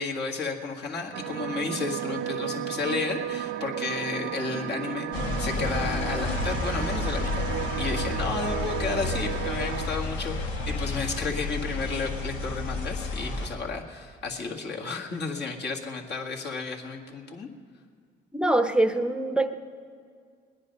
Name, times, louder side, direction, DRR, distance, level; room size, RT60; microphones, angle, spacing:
voice 1, 0.0-17.5, left 4 dB, 60° left, 0 dB, 1.9 m, -32 dB
sound 1, 1.1-9.9, right 12 dB, 75° right, 0.5 m, -34 dB
sound 2, 5.1-13.5, left 3 dB, 90° left, 1.9 m, -31 dB
voice 2, 18.3-19.5, right 1 dB, 5° right, 9 dB, 0.7 m, -24 dB
20.5 x 10.0 x 5.4 m, 2.1 s
cardioid pair, 90°, 20 cm